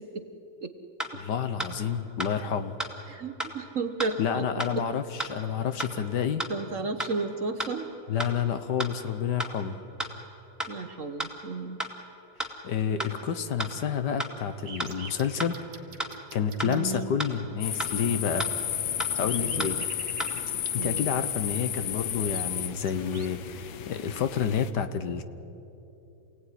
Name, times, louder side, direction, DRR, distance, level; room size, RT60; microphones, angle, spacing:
sound 1, 1.0-1.1 1.6-1.7 2.2-2.3 2.8-2.9 3.4-3.5 4.0-4.1 4.6-4.7 5.2-5.3 5.8-5.9 6.4-6.5 7.0-7.1 7.6-7.7 8.2-8.3 8.8-8.9 9.4-9.5 10.0-10.1 10.6-10.7 11.2-11.3 11.8-11.9 12.4-12.5 13.0-13.1 13.6-13.7 14.2-14.3 14.8-14.9 15.4-15.5 16.0-16.1 16.6-16.7 17.2-17.3 17.8-17.9 18.4-18.5 19.0-19.1 19.6-19.7 20.2-20.3, right 1 dB, ahead, 2.1 m, -32 dB
voice 1, 1.1-2.7 4.2-6.5 8.1-9.8 12.6-15.6 16.3-18.5 19.1-19.8 20.7-25.2, left 7 dB, 65° left, 10 dB, 1.5 m, -29 dB
voice 2, 3.1-4.5 4.7-4.8 6.5-7.9 10.7-11.8 16.6-17.1 19.5-19.8 20.7-21.1, right 3 dB, 50° right, 8 dB, 1.2 m, -33 dB
sound 2, 14.6-17.0 18.5-18.6 18.8-20.5 21.8-21.9 22.3-23.4, right 5 dB, 85° right, 2.6 m, -45 dB
sound 3, 17.6-24.7, left 10 dB, 85° left, 1.7 m, -32 dB
28.0 x 17.5 x 10.0 m, 3.0 s
omnidirectional pair, 2.1 m